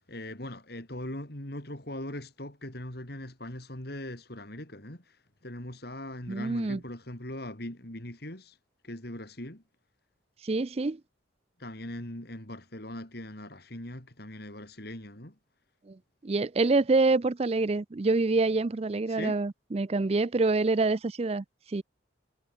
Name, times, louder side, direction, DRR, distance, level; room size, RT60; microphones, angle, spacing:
voice 1, 0.0-5.2 5.4-8.6 8.8-9.6 11.6-15.4 19.1-19.4, left 1 dB, 55° left, 3.7 m, -40 dB
voice 2, 6.3-6.8 10.4-11.0 15.9-16.0 16.2-21.8, right 3 dB, 30° right, 0.4 m, -26 dB
head